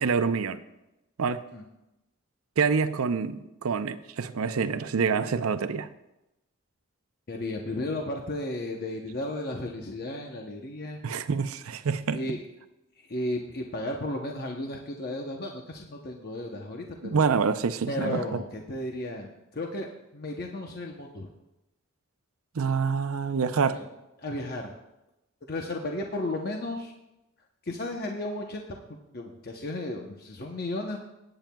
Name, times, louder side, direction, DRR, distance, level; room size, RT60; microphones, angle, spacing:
voice 1, 0.0-0.6 1.2-1.4 2.6-5.9 11.0-12.4 17.0-18.4 22.6-23.8, right 5 dB, 80° right, 11 dB, 0.6 m, -27 dB
voice 2, 7.3-11.0 12.1-12.4 13.1-17.2 17.9-21.3 23.7-23.9 24.2-24.8 25.5-26.9 27.6-28.7 29.1-31.0, left 1 dB, 45° left, 1 dB, 0.8 m, -34 dB
17.5 x 8.8 x 2.3 m, 0.94 s
head